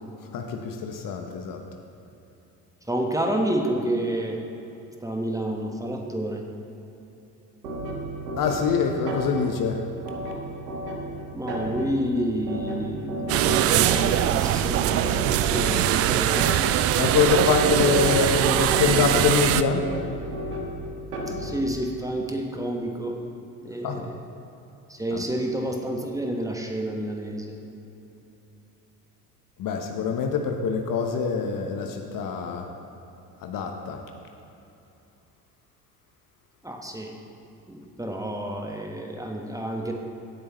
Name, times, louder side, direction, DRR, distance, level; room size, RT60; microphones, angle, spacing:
voice 1, 0.3-1.6 8.4-9.8 13.5-13.6 17.0-19.9 23.8-24.0 25.1-25.2 29.6-32.7 33.4-34.0, left 5 dB, 45° left, 4 dB, 1.1 m, -25 dB
voice 2, 2.9-4.4 5.0-6.5 11.3-16.5 21.3-23.2 23.6-24.2 24.9-27.6 36.6-37.2 37.7-39.9, right 1 dB, 5° right, 1 dB, 1.3 m, -29 dB
sound 1, 7.6-21.8, right 1 dB, 80° right, 1.5 m, -33 dB
sound 2, 13.3-19.6, right 12 dB, 35° right, 0.4 m, -22 dB
16.5 x 8.5 x 3.2 m, 2.9 s
figure-of-eight pair, 60°, 48 cm